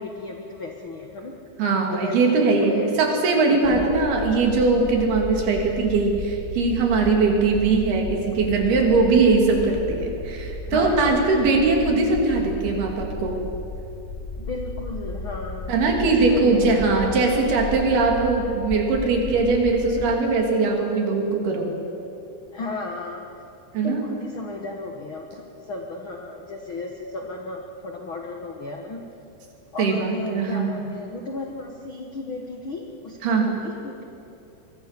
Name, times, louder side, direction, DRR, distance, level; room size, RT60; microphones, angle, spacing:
voice 1, 0.0-1.3 1.9-2.9 3.5-3.9 10.7-11.3 14.4-17.0 22.5-23.2 23.8-29.1 29.7-34.0, left 3 dB, 80° left, 2 dB, 1.1 m, -34 dB
voice 2, 1.6-13.4 15.7-21.7 23.7-24.0 29.8-30.8 33.2-33.5, right 3 dB, 70° right, 1 dB, 4.7 m, -21 dB
sound 1, 3.6-20.2, left 2 dB, 25° left, 1.7 m, -34 dB
23.0 x 23.0 x 6.7 m, 2.7 s
omnidirectional pair, 4.6 m